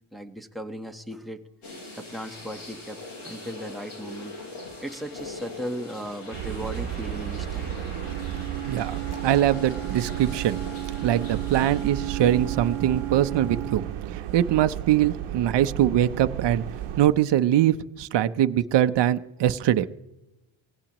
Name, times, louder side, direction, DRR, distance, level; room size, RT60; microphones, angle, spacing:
voice 1, 0.1-1.4 2.0-4.3 4.8-7.8 11.5-11.8, equal, ahead, 8 dB, 1.1 m, -37 dB
sound 1, 1.6-13.8 14.3-14.4 16.7-16.9, left 2 dB, 80° left, 7.1 m, -43 dB
sound 2, 6.3-17.0, right 11 dB, 90° right, 1.0 m, -33 dB
Wind instrument woodwind instrument, 7.9-14.0, right 17 dB, 30° left, 7.4 m, -35 dB
voice 2, 8.6-10.6 11.0-13.8 14.1-16.6 17.0-19.9, right 11 dB, 55° right, 10 dB, 0.8 m, -22 dB
24.0 x 18.0 x 3.0 m, 0.98 s
cardioid pair, 115°, 49 cm